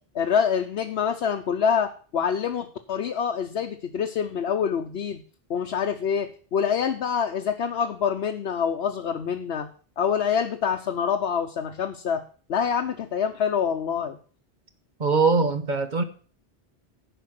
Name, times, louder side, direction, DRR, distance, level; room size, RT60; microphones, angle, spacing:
voice 1, 0.1-5.2 5.5-9.7 10.0-12.2 12.5-14.2, left 7 dB, 80° left, 4 dB, 1.0 m, -26 dB
voice 2, 15.0-16.0, right 4 dB, 50° right, 9 dB, 1.1 m, -22 dB
10.5 x 5.2 x 7.6 m, 0.42 s
omnidirectional pair, 1.1 m